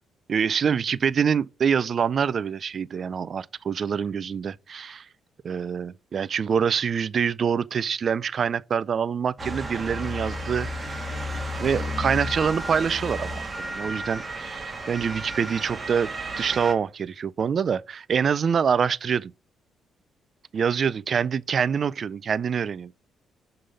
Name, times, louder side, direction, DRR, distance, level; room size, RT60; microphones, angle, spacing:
voice 1, 0.3-5.0 5.4-11.0 11.6-16.1 16.4-19.3 20.5-22.9, right 7 dB, 50° right, 0.4 m, -25 dB
Motor vehicle (road) / Siren, 9.4-16.7, equal, 25° right, 1.4 m, -32 dB
6.7 x 3.8 x 4.8 m
cardioid pair, 90°, 0 cm